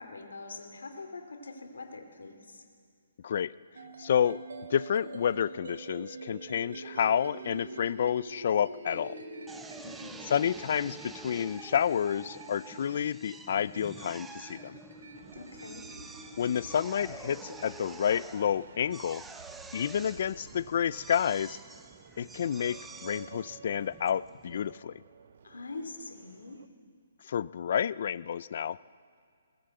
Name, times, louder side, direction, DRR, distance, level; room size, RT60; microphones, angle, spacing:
voice 1, 0.0-2.6 9.8-10.3 15.3-15.9 25.4-26.7, left 3 dB, 90° left, 6 dB, 2.9 m, -44 dB
sound 1, 3.7-17.8, right 2 dB, 75° right, 4.8 m, -46 dB
voice 2, 4.0-4.4 4.7-9.1 10.3-14.8 16.4-19.2 19.7-21.6 22.2-25.0 27.3-28.8, left 8 dB, 50° left, 20 dB, 0.4 m, -29 dB
Drill, 9.5-24.7, right 3 dB, 5° right, 0.7 m, -49 dB
sound 2, 15.1-26.7, right 7 dB, 55° right, 1.0 m, -53 dB
22.0 x 19.0 x 7.9 m, 2.1 s
hypercardioid pair, 165°, 0 cm